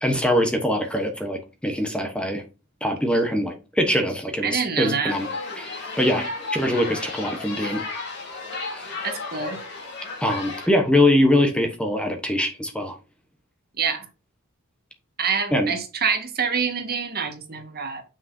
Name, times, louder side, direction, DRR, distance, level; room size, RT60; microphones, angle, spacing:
voice 1, 0.0-2.4 2.8-5.3 5.6-7.9 8.7-8.9 10.2-12.9 15.5-15.7, left 1 dB, 5° left, 1.1 m, -23 dB
voice 2, 4.4-5.2 9.0-9.6 13.8-14.1 15.2-18.0, right 6 dB, 45° right, 1.7 m, -26 dB
sound 1, 5.1-10.7, left 3 dB, 50° left, 3.4 m, -33 dB
7.4 x 6.2 x 2.8 m
head